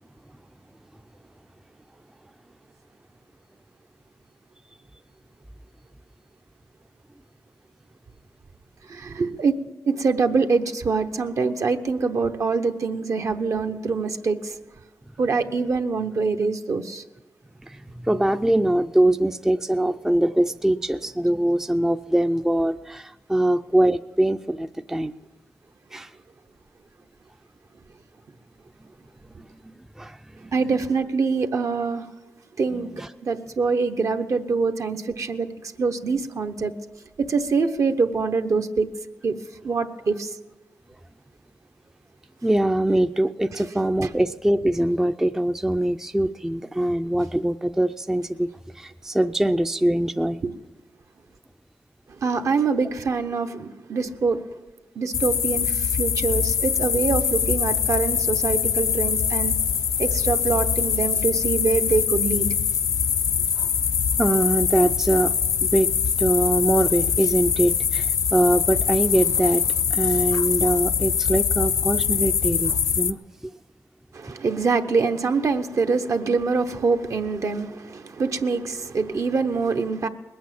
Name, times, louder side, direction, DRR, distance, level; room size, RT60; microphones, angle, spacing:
voice 1, 8.9-9.5 9.9-14.6 15.2-17.0 30.5-32.1 32.6-32.9 33.2-36.7 37.2-38.9 39.2-39.4 39.6-40.4 43.5-43.6 44.0-44.1 50.4-50.5 52.2-54.4 55.0-59.6 60.0-62.5 74.1-80.1, right 4 dB, 60° right, 0.9 m, -24 dB
voice 2, 17.7-25.1 25.9-26.1 30.0-30.2 33.0-33.1 42.4-48.5 48.8-50.4 64.2-65.3 65.6-65.9 66.2-69.7 69.9-73.2, right 1 dB, 5° right, 0.4 m, -22 dB
sound 1, 55.1-73.1, left 7 dB, 80° left, 0.4 m, -23 dB
20.0 x 8.5 x 7.6 m
cardioid pair, 90°, 6 cm